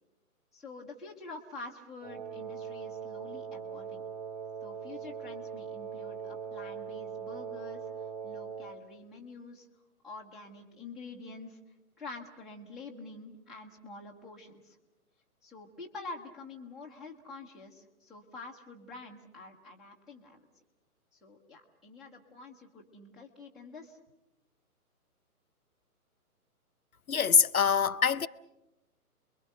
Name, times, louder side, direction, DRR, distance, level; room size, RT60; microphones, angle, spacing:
voice 1, 0.5-4.0 4.6-9.7 10.0-11.6 12.0-14.8 15.4-20.5 21.2-24.0, left 3 dB, ahead, 0.8 m, -47 dB
Wind instrument woodwind instrument, 2.0-8.8, right 7 dB, 30° right, 3.5 m, -41 dB
voice 2, 27.1-28.3, left 7 dB, 65° left, 0.8 m, -24 dB
29.0 x 22.5 x 6.7 m
figure-of-eight pair, 135°, 45 cm